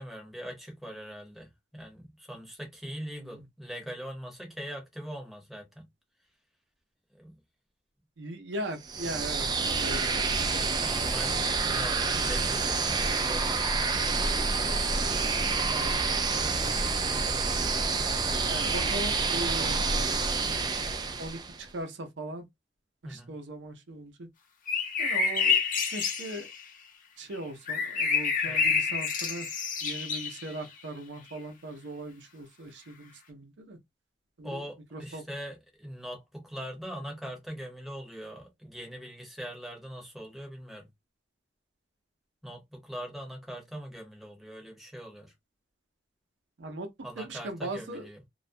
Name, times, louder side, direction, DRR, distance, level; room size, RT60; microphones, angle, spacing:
voice 1, 0.0-5.9 7.1-7.4 10.8-13.7 23.0-23.3 28.4-28.7 34.4-40.9 42.4-45.3 47.0-48.2, equal, ahead, 0.8 m, -42 dB
voice 2, 3.1-3.4 8.2-11.0 15.7-17.2 18.5-20.2 21.2-22.5 23.0-24.3 25.0-25.6 25.9-26.5 27.2-29.5 29.8-33.8 34.4-34.6 34.9-35.2 46.6-46.9 47.2-48.1, right 1 dB, 85° right, 0.6 m, -39 dB
sound 1, 8.8-21.6, right 4 dB, 25° right, 0.3 m, -28 dB
sound 2, 24.7-26.6 27.7-30.5 31.3-31.4, left 5 dB, 50° left, 0.7 m, -28 dB
2.3 x 2.1 x 2.5 m
head